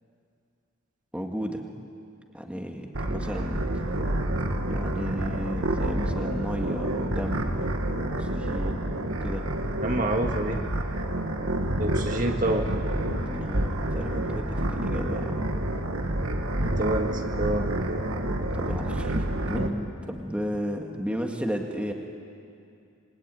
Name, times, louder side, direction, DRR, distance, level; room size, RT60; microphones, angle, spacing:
voice 1, 1.1-1.7 2.3-3.7 4.7-7.5 8.0-9.5 13.3-15.5 18.5-21.9, equal, 5° right, 2 dB, 2.0 m, -33 dB
sound 1, 2.9-19.7, right 1 dB, 85° right, 2.0 m, -28 dB
voice 2, 9.8-10.6 11.7-12.7 16.6-17.7, right 1 dB, 40° right, 3 dB, 1.9 m, -27 dB
28.0 x 23.0 x 9.3 m, 2.5 s
head